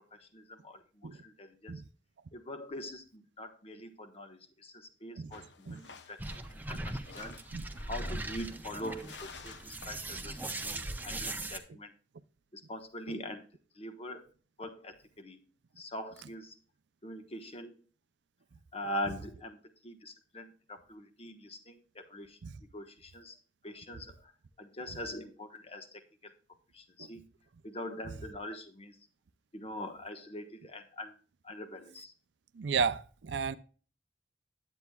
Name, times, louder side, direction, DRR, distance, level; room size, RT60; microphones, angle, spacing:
voice 1, 0.2-1.8 2.3-6.4 6.7-7.4 7.8-9.6 9.9-11.9 12.5-13.4 13.8-14.2 14.6-15.4 15.8-16.6 17.0-17.8 18.7-19.6 19.8-22.4 22.7-23.4 23.6-24.3 24.6-26.3 26.7-27.3 27.6-29.0 29.5-31.1 31.4-32.1, left 1 dB, 35° left, 1.2 m, -43 dB
sound 1, 5.3-10.6, left 5 dB, 75° left, 0.9 m, -53 dB
sound 2, 6.2-11.6, right 2 dB, 10° right, 0.7 m, -40 dB
voice 2, 32.5-33.6, right 5 dB, 75° right, 0.5 m, -33 dB
9.7 x 8.3 x 2.3 m
head